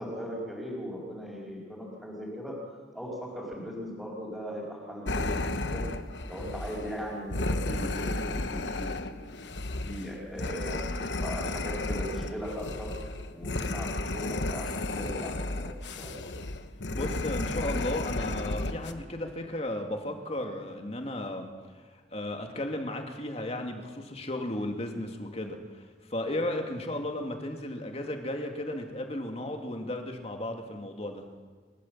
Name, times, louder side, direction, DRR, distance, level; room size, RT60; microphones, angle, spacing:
voice 1, 0.0-2.5 2.9-5.9 6.3-9.3 9.8-12.9 13.3-16.3, equal, ahead, -7 dB, 4.9 m, -39 dB
sound 1, 5.1-18.9, left 2 dB, 85° left, 1.2 m, -33 dB
voice 2, 16.9-21.5 21.9-31.2, left 1 dB, 35° left, 4 dB, 2.6 m, -34 dB
29.0 x 13.5 x 7.6 m, 1.5 s
head